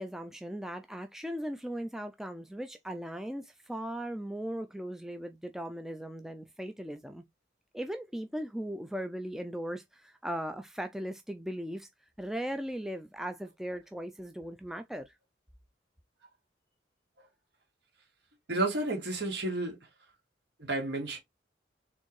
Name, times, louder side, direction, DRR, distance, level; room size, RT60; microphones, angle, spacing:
voice 1, 0.0-7.2 7.7-11.9 12.2-15.1, equal, ahead, 0.3 m, -38 dB
voice 2, 18.5-19.8 20.7-21.2, right 2 dB, 65° right, 2.2 m, -31 dB
4.3 x 3.5 x 3.1 m
head